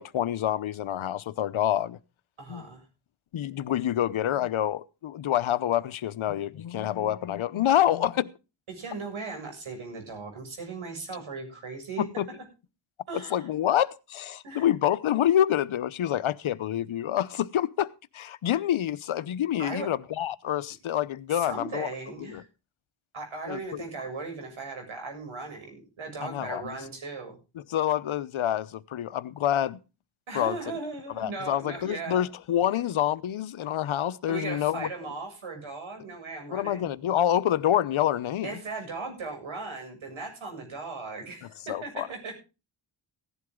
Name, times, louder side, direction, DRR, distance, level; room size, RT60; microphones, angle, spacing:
voice 1, 0.0-2.0 2.5-2.6 3.3-8.3 12.2-12.3 13.3-21.9 22.2-22.4 23.5-23.8 26.2-26.7 27.6-29.8 30.3-30.6 31.2-34.9 36.5-38.5 41.7-42.1, left 11 dB, 75° left, 0.9 m, -27 dB
voice 2, 2.4-2.9 8.7-12.4 13.1-13.5 14.4-14.7 19.6-19.9 21.3-22.5 23.1-27.4 30.3-32.2 34.3-36.9 38.4-42.3, right 3 dB, 75° right, 7.4 m, -38 dB
16.5 x 11.0 x 3.8 m
cardioid pair, 90°, 49 cm